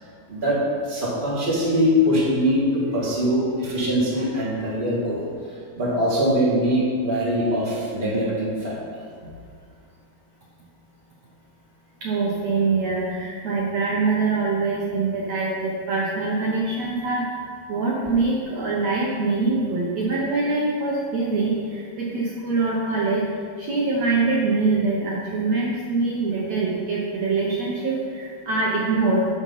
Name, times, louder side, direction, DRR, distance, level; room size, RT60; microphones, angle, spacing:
voice 1, 0.8-5.2 5.7-8.8, equal, 25° right, -6 dB, 1.2 m, -22 dB
voice 2, 12.0-17.2 17.7-23.2 23.6-29.3, right 3 dB, 90° right, -4 dB, 1.4 m, -24 dB
7.9 x 6.7 x 5.6 m, 2.1 s
omnidirectional pair, 4.5 m